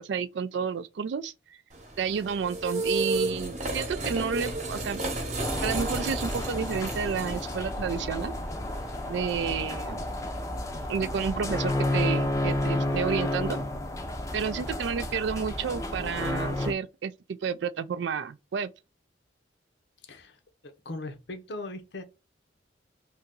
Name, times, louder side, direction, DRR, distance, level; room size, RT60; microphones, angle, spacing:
voice 1, 0.0-1.3 2.0-5.0 5.6-8.3 9.1-10.0 10.9-13.6 14.3-18.7, right 6 dB, 75° right, 0.3 m, -31 dB
sound 1, 1.7-13.1, right 2 dB, 40° right, 0.9 m, -35 dB
sound 2, 5.4-16.7, left 1 dB, 15° left, 0.5 m, -31 dB
voice 2, 20.0-20.4 20.6-22.0, left 2 dB, 70° left, 0.7 m, -39 dB
2.7 x 2.7 x 3.7 m
head